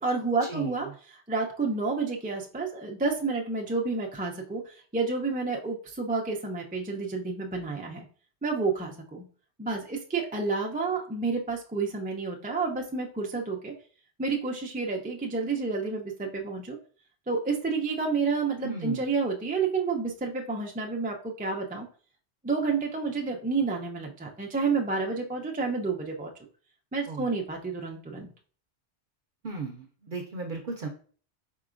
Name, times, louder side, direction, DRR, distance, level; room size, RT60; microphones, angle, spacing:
voice 1, 0.0-8.1 8.4-9.2 9.6-13.7 14.2-16.8 17.3-21.9 22.4-26.3 26.9-28.3, right 4 dB, 15° right, 1 dB, 0.3 m, -30 dB
voice 2, 18.6-19.1 27.1-27.3 29.4-30.9, right 4 dB, 55° right, 2 dB, 0.7 m, -36 dB
4.6 x 3.8 x 2.5 m, 0.43 s
omnidirectional pair, 1.1 m